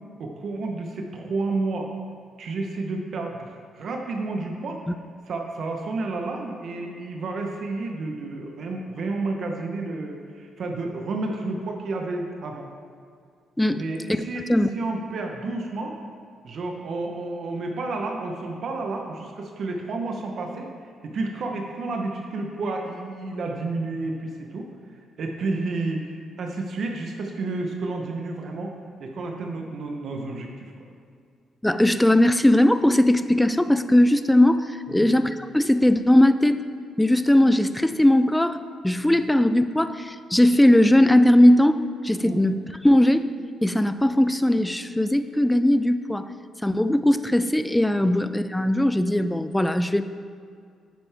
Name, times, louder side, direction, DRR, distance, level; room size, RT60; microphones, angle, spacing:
voice 1, 0.2-1.9 2.4-4.8 5.3-12.7 13.7-14.5 14.7-16.0 16.4-20.7 21.0-28.7 29.0-30.7 34.9-35.1 42.2-42.4, right 3 dB, 55° right, 2 dB, 0.9 m, -31 dB
voice 2, 31.6-36.6 37.0-43.3 43.6-46.3 46.6-50.0, left 1 dB, 5° left, 11 dB, 0.4 m, -19 dB
9.2 x 9.1 x 3.5 m, 2.2 s
cardioid pair, 120°, 0 cm